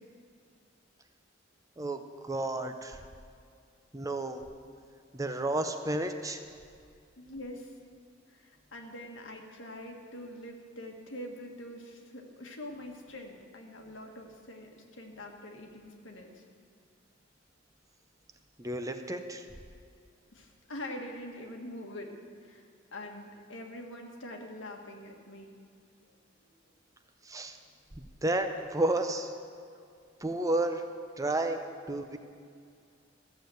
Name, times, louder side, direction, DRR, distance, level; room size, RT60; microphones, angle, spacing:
voice 1, 1.8-3.0 3.9-4.4 5.1-6.4 18.6-19.5 27.3-27.6 27.9-29.3 30.2-30.8 31.2-32.2, right 2 dB, 15° right, 7 dB, 0.6 m, -32 dB
voice 2, 7.2-7.7 8.3-16.4 20.3-22.1 22.4-22.6 22.9-25.6, left 1 dB, 75° left, 2 dB, 1.7 m, -44 dB
14.0 x 7.4 x 7.8 m, 2.3 s
head